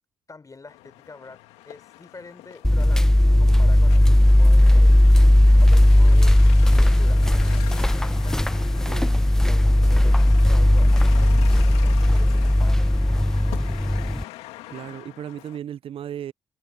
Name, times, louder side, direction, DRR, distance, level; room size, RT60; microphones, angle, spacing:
voice 1, 0.3-5.0 5.6-8.9 9.4-14.0, left 3 dB, 35° left, 4.1 m, -46 dB
sound 1, 0.7-15.6, left 17 dB, 80° left, 2.0 m, -42 dB
sound 2, 2.6-14.2, left 1 dB, 5° left, 0.3 m, -16 dB
voice 2, 8.9-9.2 14.7-16.3, right 10 dB, 60° right, 0.7 m, -35 dB
hypercardioid pair, 45°, 11 cm